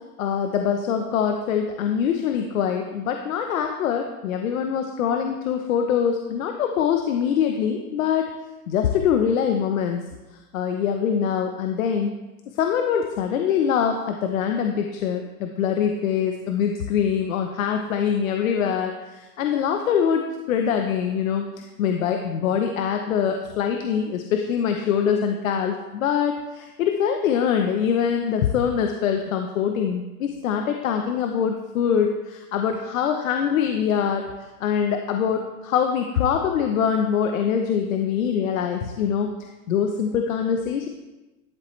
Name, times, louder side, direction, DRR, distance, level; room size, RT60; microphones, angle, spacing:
voice 1, 0.2-8.3 8.7-10.0 10.5-12.2 12.5-34.2 34.6-39.3 39.7-40.9, left 7 dB, 65° left, 4 dB, 0.9 m, -24 dB
12.0 x 7.5 x 3.2 m, 1.1 s
supercardioid pair, 165°, 45 cm